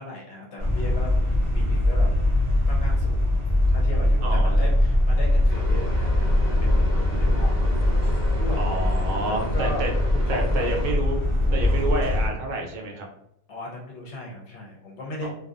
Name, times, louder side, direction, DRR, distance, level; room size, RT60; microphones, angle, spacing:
voice 1, 0.0-2.1 2.7-3.3 3.7-7.7 8.4-8.7 9.2-9.8 10.1-10.8 13.5-15.3, left 1 dB, 60° left, -2 dB, 0.8 m, -37 dB
sound 1, 0.6-12.3, left 1 dB, 40° right, 0.4 m, -22 dB
voice 2, 4.2-4.6 8.6-9.9 10.3-11.2 11.5-13.1 15.2-15.3, right 2 dB, 75° right, 1 dB, 1.0 m, -29 dB
sound 2, 5.5-10.9, equal, 15° left, 0.5 m, -37 dB
2.7 x 2.2 x 2.4 m, 0.79 s
omnidirectional pair, 1.5 m